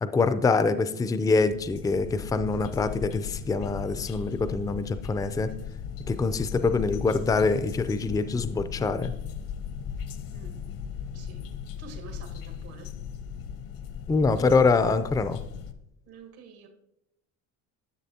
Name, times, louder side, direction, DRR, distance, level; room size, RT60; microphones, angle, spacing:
voice 1, 0.0-5.5 6.1-9.1 14.1-15.4, left 4 dB, 10° left, 0.4 m, -25 dB
sound 1, 1.2-15.7, left 8 dB, 65° left, 0.8 m, -37 dB
voice 2, 11.8-12.9 16.1-16.7, right 6 dB, 80° right, 1.6 m, -48 dB
11.0 x 6.7 x 2.8 m
supercardioid pair, 90°, 37 cm